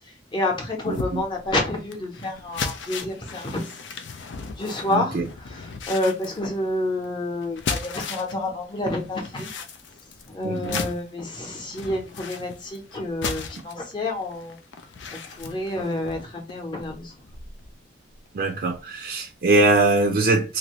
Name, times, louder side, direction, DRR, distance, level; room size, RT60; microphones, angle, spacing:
voice 1, 0.3-3.7 4.5-9.5 10.3-14.6 15.1-17.1, left 1 dB, 25° left, 0.8 m, -29 dB
sound 1, 0.9-8.4 8.7-17.7 18.1-18.3 18.7-18.8, left 5 dB, 85° left, 0.5 m, -36 dB
voice 2, 0.9-1.2 4.9-5.3 10.4-10.8 18.3-20.6, right 2 dB, 55° right, 0.4 m, -22 dB
2.6 x 2.6 x 3.0 m
head